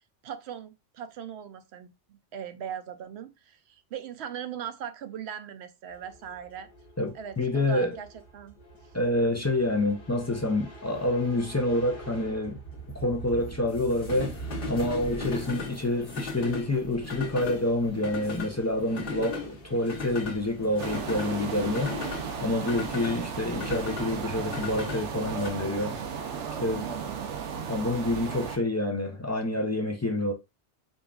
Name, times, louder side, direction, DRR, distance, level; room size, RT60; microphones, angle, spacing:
voice 1, 0.2-6.7 7.1-8.6 26.7-27.3, right 8 dB, 70° right, 0.8 m, -40 dB
sound 1, 6.0-25.5, left 2 dB, 55° left, 1.2 m, -38 dB
voice 2, 7.0-8.0 8.9-12.6 13.0-22.1 22.4-26.0 26.6-26.9 27.7-30.3, left 1 dB, 25° left, 0.3 m, -28 dB
sound 2, 20.8-28.6, right 7 dB, 90° right, 1.1 m, -35 dB
5.2 x 2.4 x 2.3 m
omnidirectional pair, 1.2 m